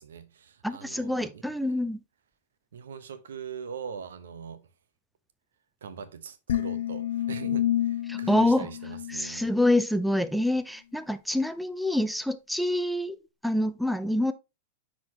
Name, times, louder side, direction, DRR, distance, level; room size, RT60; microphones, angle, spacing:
voice 1, 0.0-1.4 2.7-4.6 5.8-9.5, right 6 dB, 85° right, 0.9 m, -41 dB
voice 2, 0.6-2.0 8.1-8.7 9.1-13.2 13.4-14.3, left 1 dB, ahead, 0.5 m, -26 dB
sound 1, 6.5-9.8, left 12 dB, 80° left, 0.8 m, -30 dB
9.5 x 4.3 x 2.9 m
hypercardioid pair, 120°, 0 cm